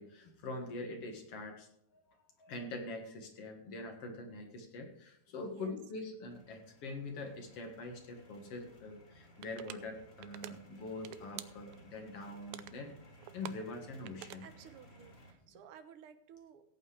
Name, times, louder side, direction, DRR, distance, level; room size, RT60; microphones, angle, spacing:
voice 1, 0.0-2.0 2.4-12.9 13.3-14.5, left 2 dB, 55° left, 3 dB, 2.4 m, -44 dB
sound 1, 6.3-15.3, right 1 dB, 25° left, 1.5 m, -59 dB
sound 2, 9.4-9.8 10.2-10.5 10.9-11.9 12.3-12.8 13.2-14.5, right 14 dB, 85° right, 2.0 m, -46 dB
voice 2, 14.4-16.6, right 8 dB, 65° right, 9 dB, 1.5 m, -55 dB
16.5 x 8.6 x 3.4 m, 0.77 s
omnidirectional pair, 3.4 m